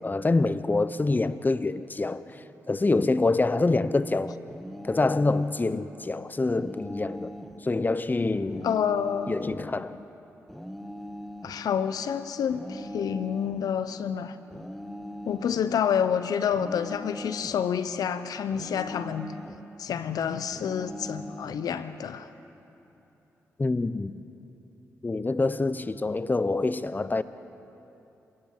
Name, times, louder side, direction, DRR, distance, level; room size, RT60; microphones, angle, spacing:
voice 1, 0.0-2.2 2.7-4.4 4.8-7.3 7.6-8.7 9.3-10.0 23.6-24.2 25.0-27.2, left 3 dB, 25° left, 0.9 m, -26 dB
sound 1, 4.5-5.6 6.5-7.6 8.5-9.6 10.5-11.6 12.5-13.6 14.5-15.6 16.5-17.6 18.5-19.6 20.5-21.6, equal, ahead, 2.2 m, -40 dB
voice 2, 8.6-9.3 11.4-14.4 15.2-19.3 19.8-22.3, left 8 dB, 70° left, 1.0 m, -28 dB
29.0 x 17.5 x 7.5 m
hypercardioid pair, 40°, 7 cm